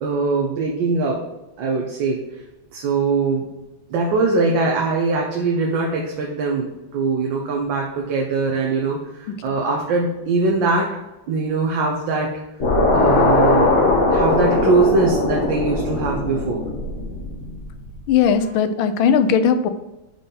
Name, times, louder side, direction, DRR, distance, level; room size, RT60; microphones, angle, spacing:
voice 1, 0.0-1.2 1.6-2.2 2.7-3.5 3.9-10.9 11.3-12.3 12.9-13.7 14.1-16.6, right 4 dB, 75° right, -1 dB, 1.5 m, -22 dB
sound 1, 12.6-17.9, left 2 dB, 40° left, 1.6 m, -19 dB
voice 2, 18.1-19.7, left 7 dB, 90° left, 10 dB, 1.4 m, -17 dB
5.4 x 3.8 x 5.6 m, 1.0 s
omnidirectional pair, 2.2 m